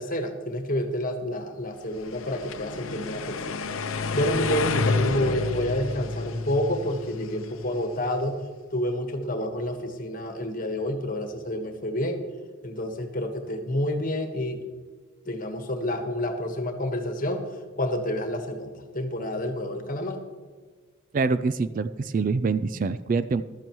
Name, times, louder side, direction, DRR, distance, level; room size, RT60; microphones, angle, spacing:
voice 1, 0.0-3.5 4.1-8.4 8.7-12.2 12.6-14.6 15.2-17.4 17.7-20.2, left 1 dB, 40° left, 6 dB, 1.3 m, -29 dB
sound 1, 2.0-8.1, left 4 dB, 85° left, 0.7 m, -30 dB
voice 2, 21.1-23.4, right 4 dB, 40° right, 14 dB, 0.3 m, -25 dB
14.0 x 12.5 x 3.1 m, 1.5 s
head